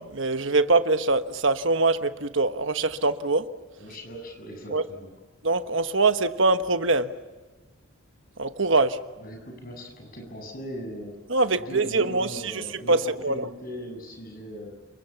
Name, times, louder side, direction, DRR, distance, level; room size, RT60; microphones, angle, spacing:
voice 1, 0.0-3.4 4.7-4.8 5.4-7.1 8.4-9.0 11.3-13.5, right 3 dB, 60° right, 9 dB, 1.3 m, -23 dB
voice 2, 3.8-5.1 9.2-11.2 11.6-14.8, equal, 45° left, 3 dB, 7.8 m, -39 dB
28.5 x 23.5 x 7.2 m, 1.3 s
head